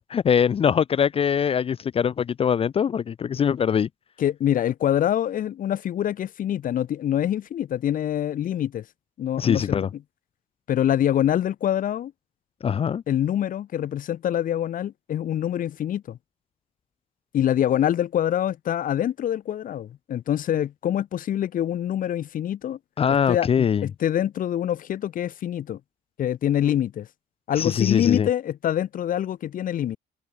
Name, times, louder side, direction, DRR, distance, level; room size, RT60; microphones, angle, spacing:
voice 1, 0.0-3.9 9.4-9.9 12.6-13.0 23.0-23.9 27.5-28.3, left 7 dB, 35° left, 0.6 m, -22 dB
voice 2, 4.2-8.8 9.2-9.8 10.7-12.1 13.1-16.2 17.3-22.8 23.1-25.8 26.2-27.1 27.5-30.0, left 11 dB, 55° left, 1.6 m, -25 dB
cardioid pair, 110°, 17 cm